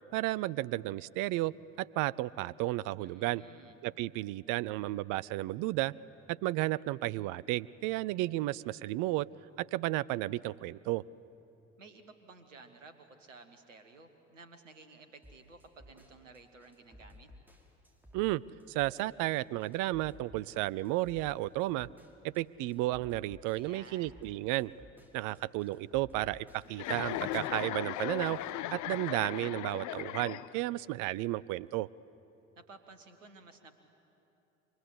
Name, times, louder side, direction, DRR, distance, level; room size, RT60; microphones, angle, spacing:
voice 1, 0.1-3.4 3.8-5.9 6.3-9.3 9.6-11.0 18.1-18.4 18.7-21.9 22.2-24.7 25.1-28.4 28.7-31.9, right 17 dB, 55° right, 20 dB, 0.6 m, -33 dB
voice 2, 3.0-3.8 11.8-17.3 23.5-24.2 32.6-33.7, right 3 dB, 85° right, 9 dB, 1.7 m, -54 dB
sound 1, 15.2-27.2, left 1 dB, 5° right, 4.5 m, -56 dB
Chuckle chortle, 26.7-30.8, left 13 dB, 50° left, 0.8 m, -37 dB
28.5 x 24.5 x 8.1 m, 3.0 s
figure-of-eight pair, 50°, 37 cm